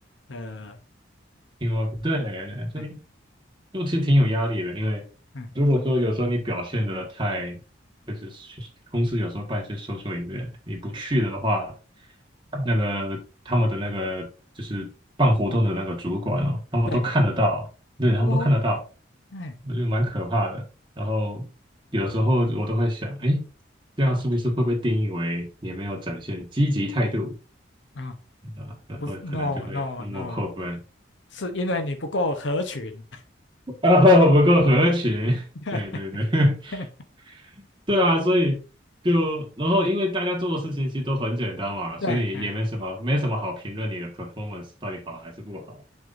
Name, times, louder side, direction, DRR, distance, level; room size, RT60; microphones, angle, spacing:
voice 1, 0.3-0.8 2.8-2.9 5.3-5.5 16.9-17.0 18.2-18.5 19.3-19.5 28.0-28.1 29.0-30.5 31.3-33.2 35.7-35.8 36.7-36.8 42.0-42.5, left 2 dB, 65° left, 0.8 m, -30 dB
voice 2, 1.6-3.0 3.7-5.0 5.5-7.6 8.1-8.7 8.9-11.7 12.5-13.2 13.4-14.3 14.6-14.9 15.2-17.7 18.0-18.8 19.6-20.6 21.0-21.4 21.9-23.4 24.0-27.3 28.4-30.8 33.8-35.4 35.7-36.8 37.3-37.5 37.9-38.6 39.0-45.8, equal, 25° right, 1.5 m, -24 dB
7.7 x 5.6 x 2.6 m
head